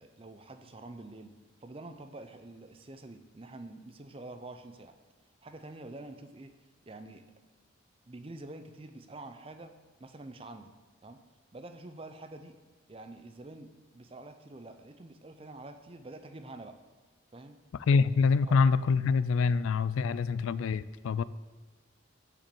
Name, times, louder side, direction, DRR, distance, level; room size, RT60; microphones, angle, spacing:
voice 1, 0.0-1.3 1.6-5.0 5.4-6.5 6.8-7.3 8.1-9.7 10.0-10.7 11.0-11.2 11.5-12.6 12.9-16.8 17.3-17.6 18.5-18.6 19.4-19.5, right 2 dB, 30° right, 8 dB, 0.5 m, -47 dB
voice 2, 17.9-21.2, left 5 dB, 85° left, 17 dB, 0.3 m, -25 dB
7.5 x 5.1 x 6.9 m, 1.3 s
head